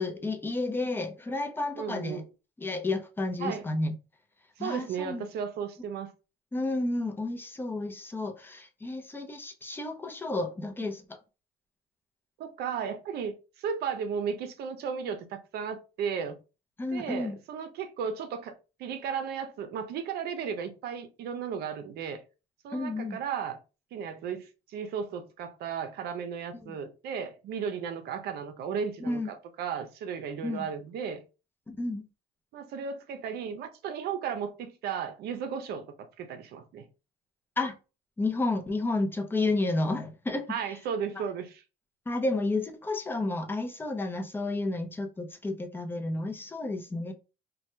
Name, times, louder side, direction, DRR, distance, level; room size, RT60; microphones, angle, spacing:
voice 1, 0.0-2.2 2.6-3.9 4.6-5.3 6.5-11.2 16.8-17.4 22.7-23.2 26.6-26.7 29.0-29.3 30.4-30.7 31.7-32.0 37.6-37.7 38.2-40.8 41.1-41.2 42.1-47.1, left 2 dB, 10° left, 0.6 m, -31 dB
voice 2, 1.8-2.3 3.4-3.6 4.6-6.1 12.4-13.3 13.6-16.4 16.9-18.5 18.8-22.2 22.6-23.6 23.9-29.2 29.6-31.2 32.5-35.9 36.2-36.8 40.5-41.6, right 7 dB, 70° right, 0.6 m, -35 dB
2.8 x 2.2 x 3.2 m
cardioid pair, 110°, 17 cm